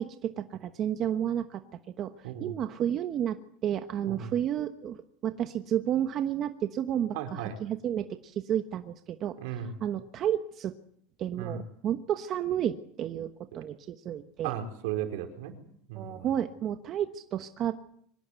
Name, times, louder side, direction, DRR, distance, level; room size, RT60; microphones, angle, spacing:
voice 1, 0.0-1.6 1.9-5.0 5.2-10.7 11.2-14.5 15.9-17.8, right 10 dB, 35° right, 8 dB, 1.2 m, -31 dB
voice 2, 7.1-7.5 9.4-9.7 11.4-11.6 13.5-13.6 14.4-15.5 15.9-16.3, right 9 dB, 70° right, 5 dB, 4.7 m, -35 dB
24.5 x 19.0 x 8.3 m, 0.66 s
supercardioid pair, 150°, 0 cm